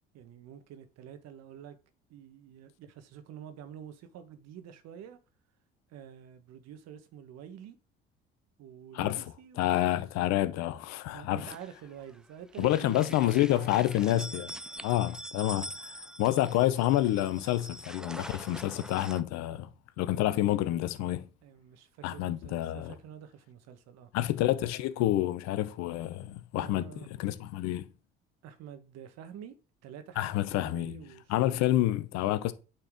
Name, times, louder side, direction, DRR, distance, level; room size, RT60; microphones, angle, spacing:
voice 1, 0.1-1.8 2.1-5.2 5.9-7.8 8.6-10.1 11.1-14.4 14.7-14.9 18.5-18.8 21.4-24.1 26.6-27.1 28.4-31.6, right 9 dB, 60° right, 1.3 m, -48 dB
voice 2, 9.6-11.5 12.6-14.5 14.8-19.7 20.0-21.2 22.0-22.9 24.1-27.8 30.2-31.0 31.3-32.5, left 14 dB, 65° left, 0.8 m, -28 dB
sound 1, 11.4-12.2 12.5-19.2, right 1 dB, ahead, 0.4 m, -44 dB
8.9 x 4.4 x 3.7 m
hypercardioid pair, 60°, 29 cm